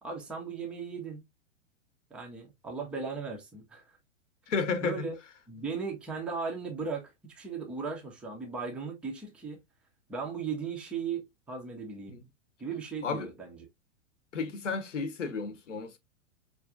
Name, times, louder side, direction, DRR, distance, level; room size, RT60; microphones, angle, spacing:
voice 1, 0.0-1.2 2.1-4.0 4.8-5.1 5.5-9.6 10.1-12.2 12.6-13.6, right 5 dB, 5° right, 0.3 m, -37 dB
voice 2, 4.5-5.1 12.1-12.2 13.0-13.3 14.3-16.0, left 5 dB, 70° left, 0.8 m, -32 dB
4.7 x 2.5 x 2.3 m
figure-of-eight pair, 100°, 38 cm